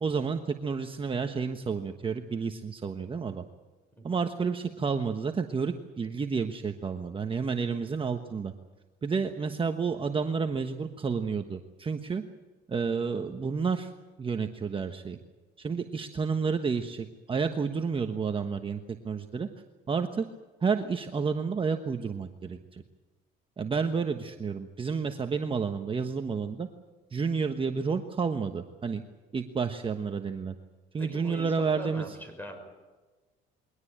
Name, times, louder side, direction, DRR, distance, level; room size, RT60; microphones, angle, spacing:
voice 1, 0.0-3.4 4.0-8.5 9.0-12.2 12.7-13.9 14.2-15.2 15.6-18.8 19.0-19.5 19.9-20.3 20.6-22.8 23.6-26.7 27.1-29.0 29.3-30.5 30.9-32.2, right 5 dB, 25° right, 6 dB, 1.2 m, -30 dB
voice 2, 31.0-32.6, equal, 10° left, 6 dB, 5.9 m, -42 dB
22.5 x 18.5 x 8.8 m, 1.3 s
cardioid pair, 110°, 20 cm